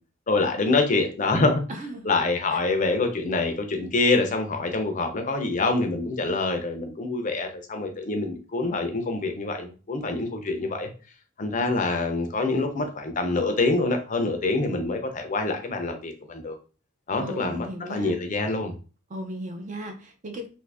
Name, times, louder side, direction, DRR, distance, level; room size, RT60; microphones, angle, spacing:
voice 1, 0.3-1.6 2.0-10.9 11.4-16.6 17.1-18.7, left 3 dB, 35° left, 5 dB, 0.5 m, -25 dB
voice 2, 1.7-2.0 2.5-2.6 17.2-18.2 19.1-20.5, equal, 35° right, 4 dB, 0.5 m, -36 dB
2.6 x 2.5 x 3.4 m, 0.35 s
head